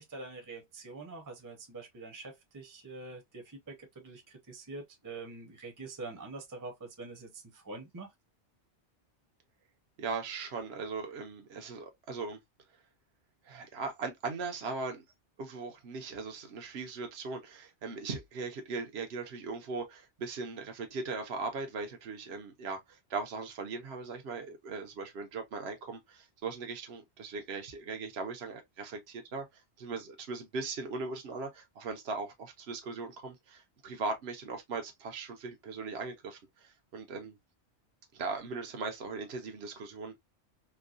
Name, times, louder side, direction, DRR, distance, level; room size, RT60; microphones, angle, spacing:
voice 1, 0.0-8.1, right 3 dB, 20° right, 0.8 m, -45 dB
voice 2, 10.0-12.4 13.4-15.0 15.4-37.3 38.1-40.2, right 4 dB, 70° right, 1.1 m, -39 dB
4.5 x 2.2 x 2.5 m
omnidirectional pair, 1.2 m